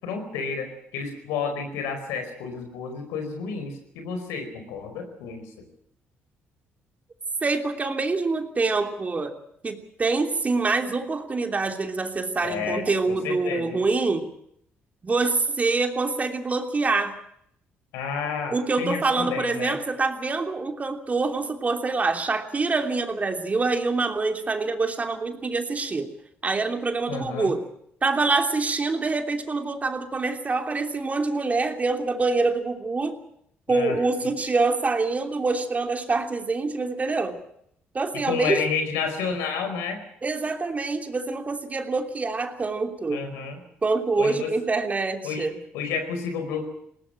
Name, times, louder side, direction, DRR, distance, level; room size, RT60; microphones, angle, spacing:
voice 1, 0.0-5.7 12.4-13.8 17.9-19.8 27.1-27.5 33.7-34.0 38.2-40.0 43.1-43.6 44.2-44.5 45.2-45.5 45.7-46.7, left 5 dB, 90° left, 6 dB, 4.8 m, -30 dB
voice 2, 7.4-9.3 9.6-14.3 15.0-17.2 18.5-26.1 26.4-27.6 28.0-33.2 33.7-37.4 37.9-38.6 40.2-43.2 43.8-45.6, right 3 dB, 35° right, 5 dB, 3.0 m, -25 dB
20.5 x 18.0 x 8.9 m, 0.73 s
supercardioid pair, 65°, 5 cm